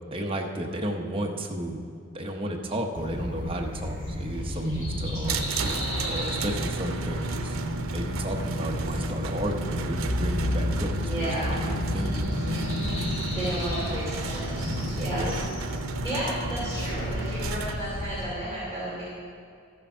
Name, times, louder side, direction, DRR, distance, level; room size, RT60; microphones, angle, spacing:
voice 1, 0.1-1.8 2.1-5.4 6.0-7.6 7.9-12.2 15.1-15.3, right 1 dB, 25° right, 1 dB, 0.8 m, -33 dB
Black Redstart, 2.9-18.2, equal, 40° left, 2.7 m, -33 dB
sound 1, 5.2-17.7, right 3 dB, 85° right, 0.6 m, -34 dB
sound 2, 8.4-14.0, left 1 dB, 60° left, 0.8 m, -32 dB
voice 2, 11.0-11.6 13.3-14.6 15.0-15.2 16.0-19.0, right 1 dB, 15° left, -11 dB, 2.9 m, -32 dB
13.5 x 6.8 x 5.5 m, 2.2 s
head